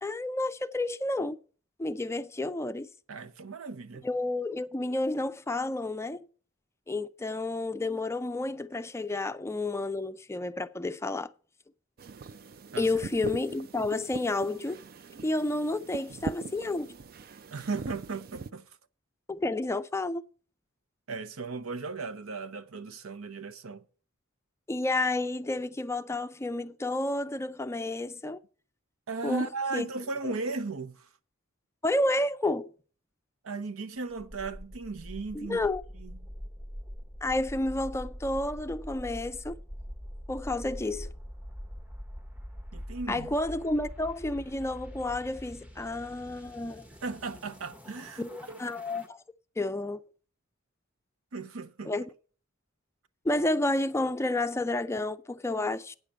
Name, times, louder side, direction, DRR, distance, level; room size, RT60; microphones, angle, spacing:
voice 1, 0.0-1.4 1.8-2.9 4.0-6.3 6.9-11.3 12.8-14.8 15.2-16.9 19.3-20.2 24.7-28.4 29.2-29.4 29.7-29.9 30.2-30.3 31.8-32.7 35.3-35.8 37.2-39.5 40.3-41.1 43.1-46.8 48.2-49.2 49.6-50.0 51.9-52.0 53.2-55.9, left 2 dB, 15° left, 0.4 m, -30 dB
voice 2, 3.1-4.1 12.7-12.9 17.5-18.7 21.1-23.8 29.1-31.1 33.4-35.6 36.0-36.2 42.7-43.3 47.0-48.6 51.3-51.9, right 3 dB, 75° right, 0.8 m, -36 dB
sound 1, 12.0-18.5, right 4 dB, 45° right, 0.4 m, -42 dB
sound 2, 34.1-49.1, equal, 5° right, 0.8 m, -44 dB
9.2 x 6.6 x 8.5 m
head